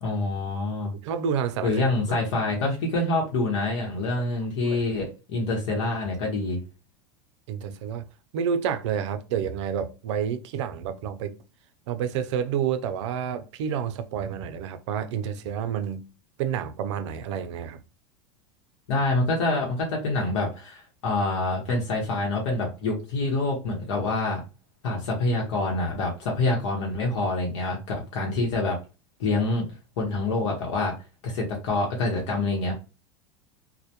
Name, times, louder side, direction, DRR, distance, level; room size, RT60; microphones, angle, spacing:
voice 1, 0.0-0.9 1.6-6.6 18.9-24.4 24.8-28.8 29.2-29.7 30.0-30.9 31.2-32.7, left 2 dB, 85° left, 0.9 m, -26 dB
voice 2, 1.0-1.8 2.1-2.2 4.6-4.8 7.5-8.0 8.3-11.4 11.9-16.1 16.4-17.8, right 8 dB, 80° right, 0.4 m, -29 dB
2.1 x 2.1 x 2.7 m
supercardioid pair, 140°, 15 cm